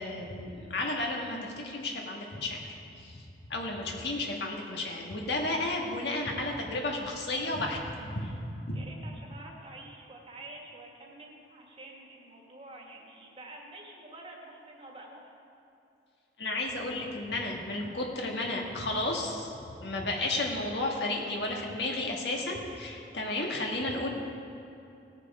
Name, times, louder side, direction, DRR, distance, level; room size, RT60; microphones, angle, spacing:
voice 1, 0.0-2.6 3.0-3.3 3.5-8.4 8.7-8.8 16.4-24.1, left 2 dB, 70° left, 0 dB, 1.7 m, -33 dB
voice 2, 8.7-15.3, right 2 dB, 35° right, -1 dB, 1.8 m, -48 dB
18.0 x 6.6 x 4.9 m, 2.7 s
head